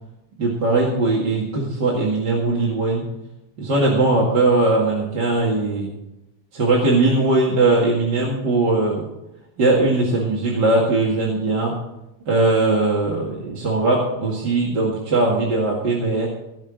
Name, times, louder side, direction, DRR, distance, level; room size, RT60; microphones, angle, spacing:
voice 1, 0.4-3.1 3.6-5.9 6.5-9.0 9.6-11.8 12.3-16.3, right 2 dB, 40° right, -4 dB, 2.5 m, -20 dB
17.5 x 6.2 x 7.7 m, 0.90 s
omnidirectional pair, 3.4 m